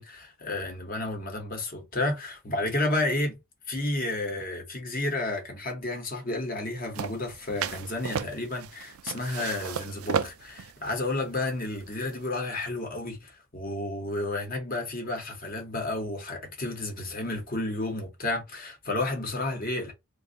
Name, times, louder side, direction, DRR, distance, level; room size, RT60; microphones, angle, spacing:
voice 1, 0.0-3.4 3.7-19.9, left 2 dB, 40° left, 1.0 m, -31 dB
sound 1, 6.9-12.3, right 7 dB, 75° right, 0.4 m, -35 dB
2.6 x 2.3 x 3.8 m
head